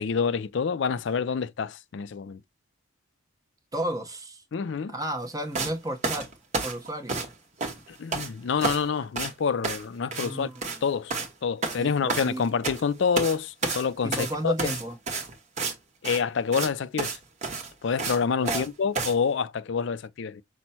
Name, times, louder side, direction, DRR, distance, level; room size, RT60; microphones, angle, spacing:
voice 1, 0.0-2.4 4.5-4.9 7.9-10.5 10.8-14.7 16.0-17.2 17.8-20.4, left 6 dB, 60° left, 0.4 m, -27 dB
voice 2, 3.7-4.4 4.9-6.3 6.6-7.2 10.1-10.7 11.8-12.4 14.0-15.0 18.2-18.7, right 1 dB, 15° right, 0.8 m, -33 dB
sound 1, 5.6-5.7 6.0-7.3 7.6-8.3 8.6-8.9 9.2-9.3 9.6-9.9 10.1-10.3 10.6-10.8 11.1-11.3 11.6-12.8 13.2-13.4 13.6-15.7 16.0-16.2 16.5-16.7 17.0-17.2 17.4-18.7 19.0-19.1, right 3 dB, 35° right, 1.0 m, -30 dB
6.0 x 2.1 x 4.1 m
head